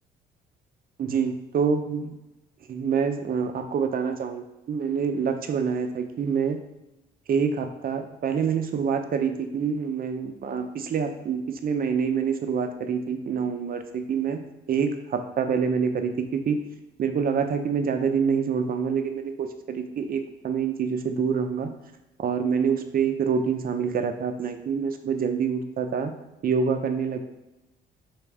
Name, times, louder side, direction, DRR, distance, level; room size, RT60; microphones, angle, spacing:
voice 1, 1.0-2.2 2.7-6.6 7.3-14.4 14.7-16.6 17.0-21.7 22.2-26.1 26.4-27.2, right 6 dB, 50° right, 7 dB, 0.5 m, -26 dB
3.5 x 3.1 x 4.7 m, 0.96 s
cardioid pair, 90°, 20 cm